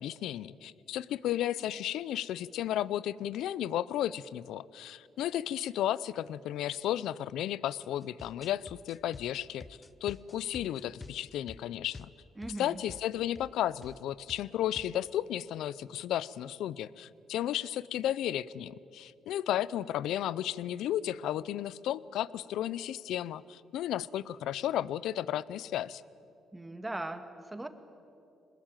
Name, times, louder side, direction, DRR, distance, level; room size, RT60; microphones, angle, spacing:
voice 1, 0.0-9.6 10.0-12.1 12.6-26.0, left 12 dB, 85° left, 20 dB, 0.5 m, -33 dB
sound 1, 8.0-12.6 12.9-13.1 13.4-13.6 13.8-14.0 14.3-15.0, left 3 dB, 30° left, 0.7 m, -49 dB
voice 2, 12.4-12.8 26.5-27.7, right 2 dB, 15° right, 9 dB, 1.8 m, -39 dB
23.0 x 20.5 x 9.1 m, 2.6 s
cardioid pair, 90°, 0 cm